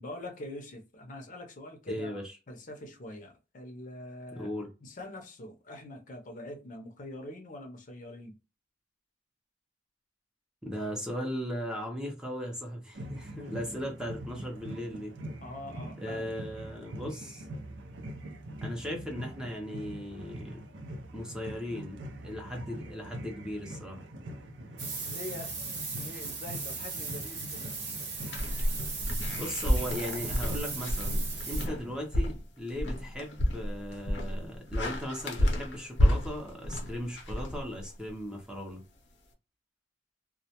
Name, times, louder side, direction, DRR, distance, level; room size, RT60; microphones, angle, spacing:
voice 1, 0.0-4.5 4.8-8.4 15.4-16.3 25.1-27.8, left 1 dB, 45° left, 0.6 m, -44 dB
voice 2, 1.9-2.2 4.4-4.7 10.6-15.1 16.0-17.5 18.6-20.6 21.1-22.0 22.2-24.0 29.3-31.2 31.5-38.8, equal, 5° right, 0.5 m, -37 dB
sound 1, 12.9-32.0, right 1 dB, 85° right, 0.5 m, -43 dB
sound 2, 24.8-31.7, right 4 dB, 65° right, 0.8 m, -38 dB
sound 3, 28.3-38.1, equal, 85° left, 0.7 m, -30 dB
2.2 x 2.0 x 2.8 m
head